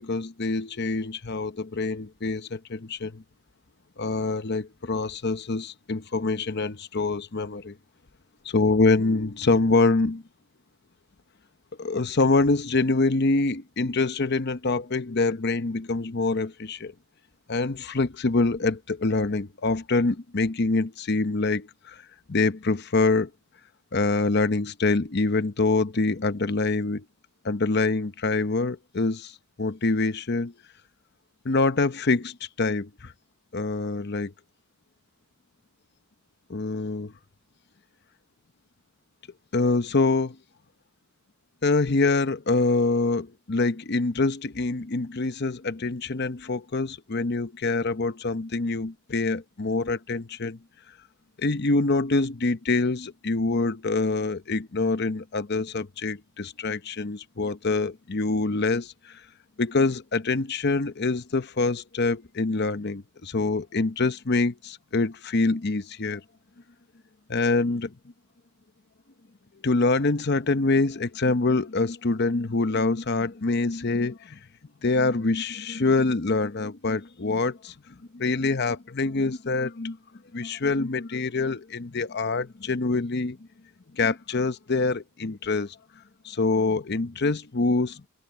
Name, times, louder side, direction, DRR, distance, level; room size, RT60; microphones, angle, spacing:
voice 1, 0.0-3.2 4.0-7.8 8.4-10.2 11.8-16.9 17.5-22.0 22.3-23.3 23.9-27.0 27.4-29.3 29.6-30.5 31.4-33.1 33.5-34.3 36.5-37.1 39.5-40.4 41.6-50.6 51.4-59.2 59.6-66.2 67.3-67.9 69.6-74.4 74.8-80.0 80.3-83.4 83.9-85.7 86.2-88.0, left 3 dB, 50° left, 0.8 m, -25 dB
head